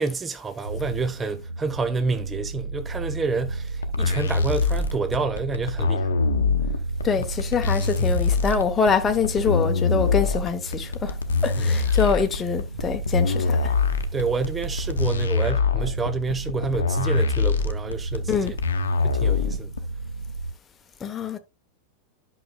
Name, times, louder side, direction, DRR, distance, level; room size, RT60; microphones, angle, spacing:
voice 1, 0.0-6.2 7.2-7.3 8.0-8.2 11.6-11.8 12.8-12.9 14.1-18.5 19.0-19.7, right 4 dB, 15° right, 0.9 m, -29 dB
sound 1, 0.6-20.5, right 3 dB, 80° right, 0.6 m, -33 dB
sound 2, 3.8-19.8, left 4 dB, 70° left, 0.9 m, -23 dB
voice 2, 7.0-11.1 11.4-13.6 18.3-18.5 21.0-21.4, left 6 dB, 20° left, 1.0 m, -24 dB
11.0 x 5.9 x 2.3 m
figure-of-eight pair, 90°, 0 cm